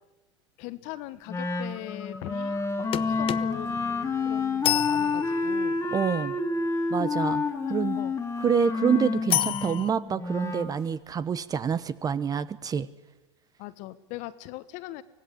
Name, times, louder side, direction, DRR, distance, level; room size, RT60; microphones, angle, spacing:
voice 1, 0.6-5.8 7.4-8.2 13.6-15.0, left 17 dB, 55° left, 14 dB, 1.4 m, -40 dB
Wind instrument woodwind instrument, 1.3-10.7, left 4 dB, 20° left, 2.4 m, -29 dB
Telephone, 1.6-4.7 4.9-5.6 5.9-6.2, left 3 dB, 5° right, 2.7 m, -50 dB
sound 1, 2.9-5.8 9.3-9.9, left 13 dB, 35° left, 0.8 m, -30 dB
voice 2, 5.9-6.3 6.9-7.4 7.7-8.0 8.4-12.9, right 7 dB, 25° right, 16 dB, 1.0 m, -27 dB
24.5 x 17.5 x 8.5 m, 1.1 s
hypercardioid pair, 90°, 15 cm